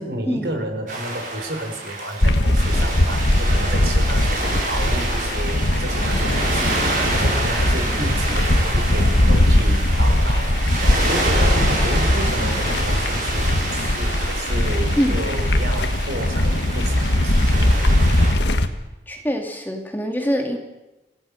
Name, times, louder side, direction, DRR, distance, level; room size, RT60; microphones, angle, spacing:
voice 1, 0.0-17.8, right 1 dB, 70° right, 5 dB, 4.6 m, -31 dB
sound 1, 0.9-18.3, right 2 dB, 50° right, 6.7 m, -28 dB
sound 2, 2.2-18.7, left 1 dB, 85° left, 1.6 m, -20 dB
voice 2, 19.1-20.6, equal, 10° left, 2 dB, 2.3 m, -24 dB
27.5 x 16.5 x 6.5 m, 1.0 s
head